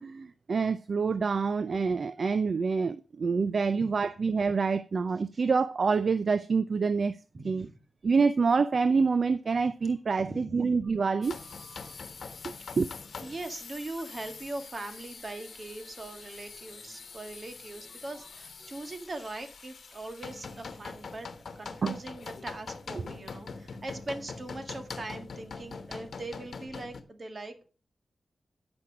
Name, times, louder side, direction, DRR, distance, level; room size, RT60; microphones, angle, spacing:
voice 1, 0.0-7.2 7.4-7.7 8.0-11.9 12.4-12.9 21.8-22.0, right 5 dB, 55° right, 0.4 m, -27 dB
voice 2, 7.3-7.7 10.2-10.7 12.5-12.7 13.2-21.3 21.6-27.7, right 2 dB, 40° right, 1.8 m, -41 dB
sound 1, 11.2-27.0, left 4 dB, 65° left, 1.2 m, -44 dB
9.8 x 6.1 x 5.9 m
wide cardioid pair, 100°, 0 cm